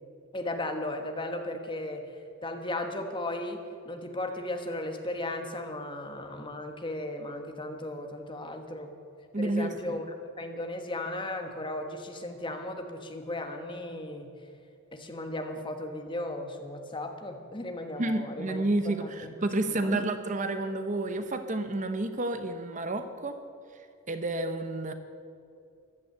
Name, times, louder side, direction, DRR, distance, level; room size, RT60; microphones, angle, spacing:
voice 1, 0.3-2.0 2.4-8.9 9.4-10.0 10.4-14.3 14.9-19.3 19.7-20.1, left 1 dB, 20° left, 5 dB, 1.4 m, -36 dB
voice 2, 9.3-10.0 18.0-23.4 23.7-24.9, right 2 dB, 35° right, 9 dB, 0.8 m, -30 dB
14.5 x 11.5 x 7.8 m, 2.5 s
head